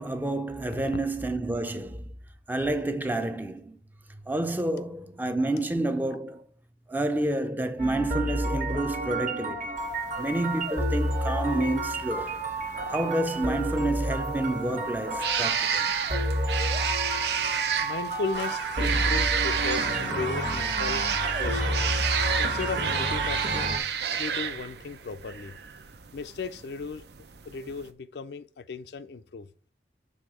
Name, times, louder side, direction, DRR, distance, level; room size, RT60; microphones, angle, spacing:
voice 1, 0.0-2.1 2.5-3.8 4.3-6.4 6.9-9.8 10.2-12.4 12.9-15.9, right 1 dB, 10° right, 0.5 m, -29 dB
sound 1, 7.8-23.8, right 1 dB, 45° right, 1.2 m, -30 dB
sound 2, 9.8-27.9, right 7 dB, 70° right, 0.6 m, -32 dB
voice 2, 17.8-21.0 21.4-21.8 22.4-23.8 24.2-25.5 26.1-27.0 27.5-29.5, left 4 dB, 65° left, 0.4 m, -36 dB
sound 3, 18.3-23.6, right 3 dB, 85° right, 1.7 m, -35 dB
6.4 x 3.6 x 5.0 m
head